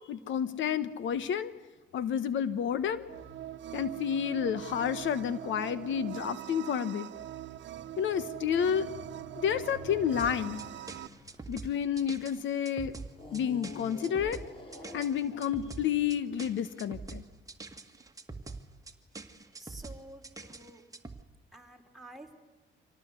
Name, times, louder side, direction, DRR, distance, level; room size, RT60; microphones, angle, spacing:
voice 1, 0.1-1.5 1.9-3.1 3.7-7.1 8.0-8.9 9.3-10.6 11.5-12.9 13.3-14.4 14.9-17.2, left 8 dB, 75° left, 15 dB, 1.1 m, -30 dB
sound 1, 3.1-11.1, right 12 dB, 65° right, 1.1 m, -42 dB
sound 2, 7.7-12.4 13.1-16.5, left 2 dB, 25° left, 3.7 m, -50 dB
sound 3, 10.2-21.2, right 3 dB, 15° right, 1.9 m, -45 dB
voice 2, 19.3-20.8 21.5-22.3, right 1 dB, ahead, 5 dB, 4.1 m, -50 dB
25.5 x 18.0 x 8.2 m, 1.2 s
cardioid pair, 90°, 20 cm